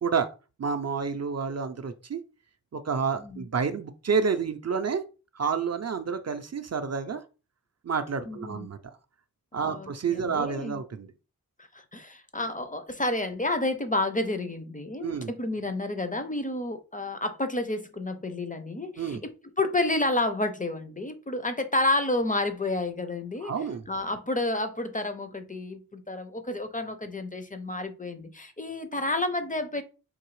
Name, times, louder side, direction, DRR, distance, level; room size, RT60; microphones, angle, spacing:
voice 1, 0.6-2.2 2.7-5.0 5.3-7.2 7.8-8.8 9.5-11.1 15.0-15.3 19.0-19.2 23.4-23.8, right 5 dB, 45° right, 0.4 m, -29 dB
voice 2, 8.3-8.7 9.7-10.8 11.7-19.3 19.6-23.5 23.9-29.8, left 2 dB, 25° left, 0.5 m, -30 dB
3.8 x 2.7 x 3.1 m
wide cardioid pair, 70°, 35 cm